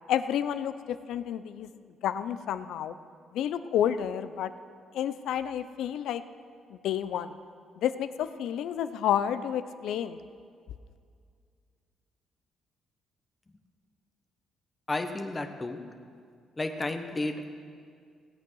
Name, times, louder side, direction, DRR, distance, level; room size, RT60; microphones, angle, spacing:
voice 1, 0.1-1.7 2.0-2.9 3.3-4.5 4.9-6.2 6.8-7.3 7.8-10.2, left 10 dB, 80° left, 12 dB, 0.5 m, -30 dB
voice 2, 14.9-15.8 16.6-17.5, left 2 dB, 20° left, 6 dB, 1.1 m, -32 dB
17.0 x 8.5 x 6.3 m, 2.2 s
cardioid pair, 90°, 0 cm